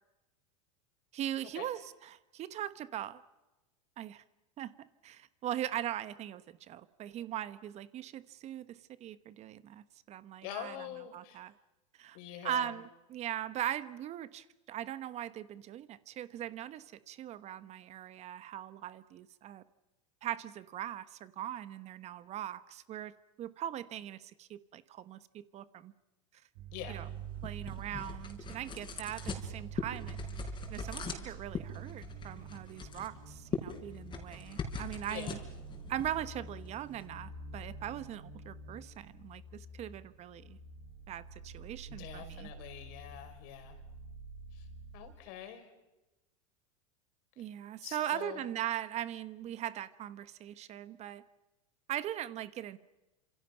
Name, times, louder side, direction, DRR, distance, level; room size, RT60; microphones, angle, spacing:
voice 1, 1.1-3.2 4.0-4.2 4.6-10.8 11.1-11.5 12.0-12.2 12.4-19.6 20.2-23.1 23.4-25.9 26.9-27.1 27.4-30.2 30.7-35.4 35.9-40.6 41.1-42.5 47.4-51.2 51.9-52.8, right 11 dB, 40° right, 15 dB, 1.1 m, -40 dB
voice 2, 10.4-11.4 12.1-12.8 26.7-27.0 35.1-35.4 41.9-43.8 44.5-44.7 44.9-45.7 47.4-47.5 47.8-48.5, left 11 dB, 60° left, 7 dB, 5.0 m, -45 dB
sound 1, 26.5-45.1, right 5 dB, 65° right, 7.4 m, -47 dB
sound 2, 26.9-37.1, left 5 dB, 25° left, 4.9 m, -43 dB
28.5 x 27.0 x 5.8 m, 1.0 s
hypercardioid pair, 110°, 18 cm